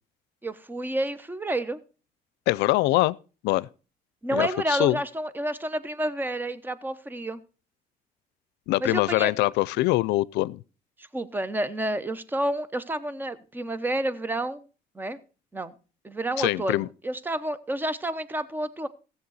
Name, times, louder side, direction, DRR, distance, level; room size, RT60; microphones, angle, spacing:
voice 1, 0.4-1.8 4.2-7.4 8.8-9.3 11.0-14.7 14.9-15.2 15.5-15.7 16.0-18.9, right 1 dB, 10° right, 0.9 m, -29 dB
voice 2, 2.5-3.2 3.4-3.7 4.3-5.0 8.7-10.6 16.4-16.9, left 19 dB, 85° left, 0.5 m, -23 dB
16.0 x 7.5 x 4.0 m
cardioid pair, 110°, 17 cm